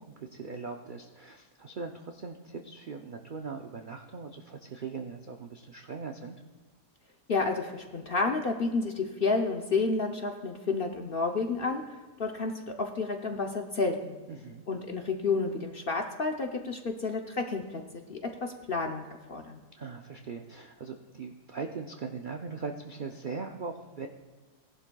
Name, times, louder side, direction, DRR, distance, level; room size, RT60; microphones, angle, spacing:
voice 1, 0.0-6.4 14.3-14.6 19.7-24.1, right 4 dB, 80° right, 3 dB, 0.4 m, -40 dB
voice 2, 7.3-14.2 14.7-17.8 18.1-19.6, left 4 dB, 50° left, 3 dB, 0.7 m, -30 dB
18.0 x 11.0 x 2.3 m, 1.3 s
omnidirectional pair, 1.7 m